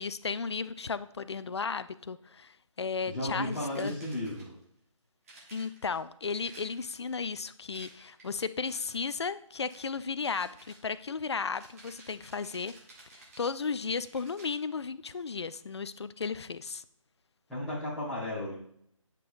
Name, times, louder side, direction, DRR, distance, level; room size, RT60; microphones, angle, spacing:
voice 1, 0.0-4.0 5.5-12.7 13.4-16.8, left 5 dB, 55° left, 15 dB, 0.4 m, -34 dB
voice 2, 3.1-4.6 17.5-18.6, left 1 dB, ahead, -15 dB, 0.6 m, -34 dB
sound 1, 3.5-4.7 5.2-6.0 6.5-7.1 7.7-8.3 8.6-9.1 9.7-9.9 10.3-14.6, right 2 dB, 25° right, 1.2 m, -55 dB
9.1 x 5.3 x 2.5 m, 0.68 s
figure-of-eight pair, 155°, 17 cm